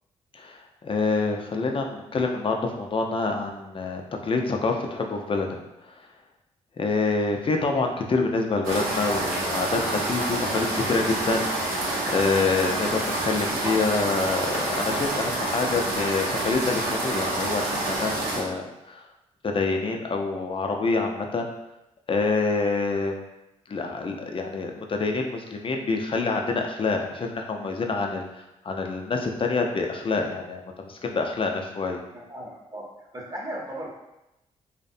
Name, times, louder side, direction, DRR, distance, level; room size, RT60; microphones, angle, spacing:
voice 1, 0.3-5.6 5.8-5.9 6.8-11.8 12.1-19.0 19.4-21.5 22.1-23.3 23.7-32.0, left 3 dB, 40° left, 3 dB, 0.4 m, -27 dB
sound 1, 8.6-18.4, right 2 dB, 85° right, 0.6 m, -28 dB
voice 2, 32.1-32.9 33.1-33.9, right 1 dB, 25° right, -2 dB, 0.8 m, -36 dB
2.4 x 2.1 x 2.6 m, 0.91 s
supercardioid pair, 50°, 14 cm